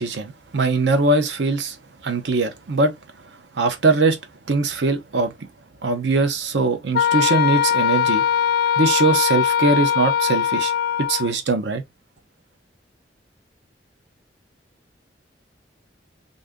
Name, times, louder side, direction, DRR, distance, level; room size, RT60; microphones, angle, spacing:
voice 1, 0.0-1.8 2.0-2.9 3.5-4.2 4.5-5.3 5.8-8.2 8.8-10.7 11.1-11.8, right 3 dB, 75° right, 0.7 m, -21 dB
Wind instrument woodwind instrument, 6.9-11.3, left 9 dB, 60° left, 0.3 m, -20 dB
2.6 x 2.5 x 3.4 m
head